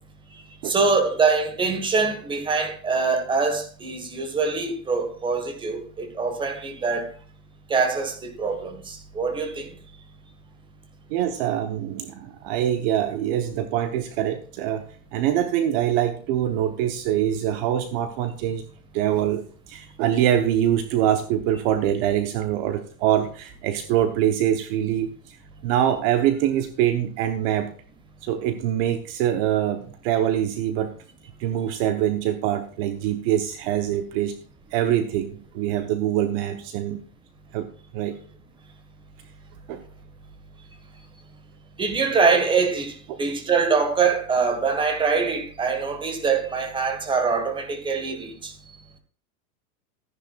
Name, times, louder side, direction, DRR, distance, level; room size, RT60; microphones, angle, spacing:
voice 1, 0.3-7.1 7.7-9.7 41.8-48.5, right 4 dB, 10° right, 1.5 m, -24 dB
voice 2, 11.1-14.8 15.1-18.6 18.9-25.4 25.6-27.7 28.2-30.9 31.4-34.3 34.7-37.0 37.5-37.7 37.9-38.1 39.7-39.8, right 11 dB, 40° right, 1.0 m, -24 dB
14.0 x 10.5 x 2.4 m
supercardioid pair, 160°, 43 cm